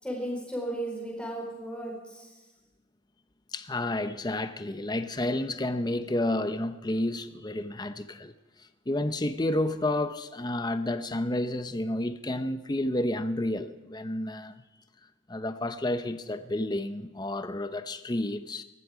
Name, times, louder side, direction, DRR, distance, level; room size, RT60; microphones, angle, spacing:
voice 1, 0.0-2.3, right 1 dB, 5° left, 4.6 m, -35 dB
voice 2, 3.5-8.3 8.6-14.6 15.3-18.6, left 1 dB, 20° left, 0.7 m, -30 dB
18.5 x 14.0 x 5.0 m
head